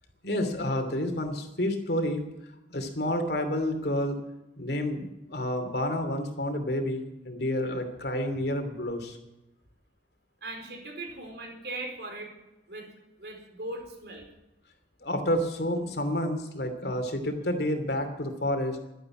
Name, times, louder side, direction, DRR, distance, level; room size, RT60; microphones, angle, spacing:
voice 1, 0.2-2.3 2.7-4.2 4.6-9.2 15.0-18.8, left 1 dB, 60° left, 6 dB, 2.8 m, -29 dB
voice 2, 10.4-12.3 12.7-12.9 13.2-14.3, right 2 dB, 65° right, 3 dB, 4.4 m, -39 dB
12.5 x 12.0 x 9.0 m, 0.94 s
head